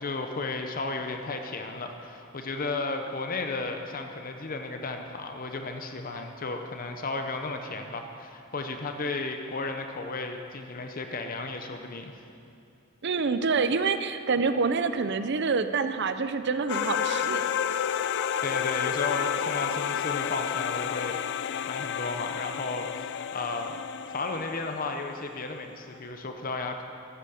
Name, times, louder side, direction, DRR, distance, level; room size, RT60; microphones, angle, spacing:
voice 1, 0.0-12.1 18.4-23.8 24.1-26.8, left 3 dB, 45° left, 5 dB, 0.8 m, -34 dB
voice 2, 13.0-17.5, right 4 dB, 60° right, 10 dB, 0.6 m, -27 dB
sound 1, 16.7-25.3, left 8 dB, 60° left, 0.4 m, -31 dB
13.5 x 8.4 x 7.0 m, 2.6 s
head